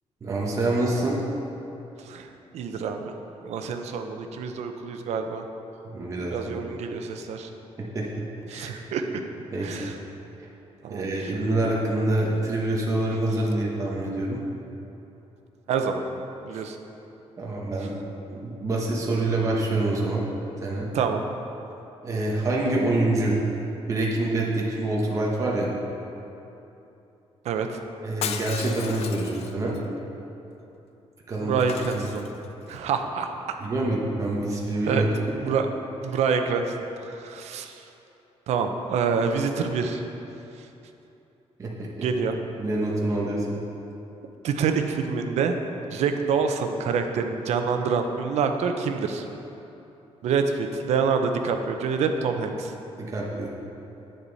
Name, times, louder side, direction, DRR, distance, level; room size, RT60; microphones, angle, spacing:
voice 1, 0.2-1.2 5.8-6.6 7.8-8.8 9.5-9.9 10.4-10.5 10.9-14.4 16.5-16.6 17.4-17.9 18.3-20.2 20.6-20.9 22.0-23.4 23.9-25.7 28.0-29.8 31.3-31.6 31.9-32.1 33.6-35.1 41.6-42.1 42.6-43.5 53.0-53.5, right 2 dB, 30° right, -4 dB, 1.2 m, -26 dB
voice 2, 2.5-3.1 3.4-5.4 6.3-7.5 8.5-9.2 9.6-10.0 10.8-11.1 15.7-16.0 16.4-16.8 20.9-21.2 27.4-27.7 31.4-32.2 32.7-33.3 34.9-35.1 35.4-35.7 36.0-36.7 37.2-37.8 38.5-40.0 42.0-42.4 44.4-45.5 45.9-49.2 50.2-52.7, right 5 dB, 85° right, 6 dB, 0.8 m, -26 dB
Shatter, 28.2-29.8 31.6-32.7 34.4-34.7, left 8 dB, 75° left, 0.6 m, -35 dB
10.0 x 8.9 x 4.1 m, 3.0 s
cardioid pair, 165°, 11 cm